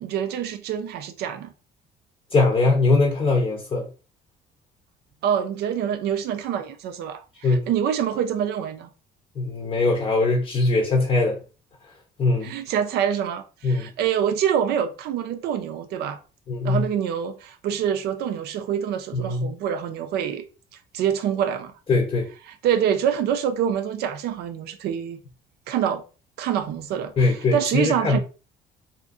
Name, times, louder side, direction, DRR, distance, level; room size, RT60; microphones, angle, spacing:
voice 1, 0.0-1.5 5.2-8.9 12.4-16.2 16.6-20.5 20.9-21.7 22.5-25.2 25.7-26.0 26.4-28.2, right 9 dB, 75° right, 0.5 m, -26 dB
voice 2, 2.3-3.9 7.4-7.7 9.4-11.4 12.2-12.5 13.6-13.9 16.5-16.8 19.1-19.5 21.9-22.3 27.2-28.2, left 3 dB, 30° left, 0.6 m, -21 dB
2.6 x 2.5 x 2.4 m
cardioid pair, 110°, 17 cm